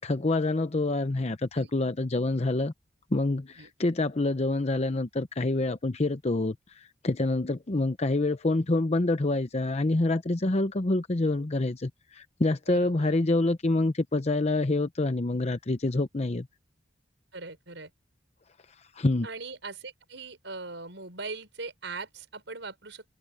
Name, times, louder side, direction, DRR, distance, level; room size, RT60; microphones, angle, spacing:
voice 1, 0.0-2.7 3.1-16.5 18.9-19.3, left 2 dB, 35° left, 0.8 m, -27 dB
voice 2, 12.7-13.1 17.3-17.9 19.2-23.0, right 3 dB, 80° right, 5.3 m, -40 dB
open air
head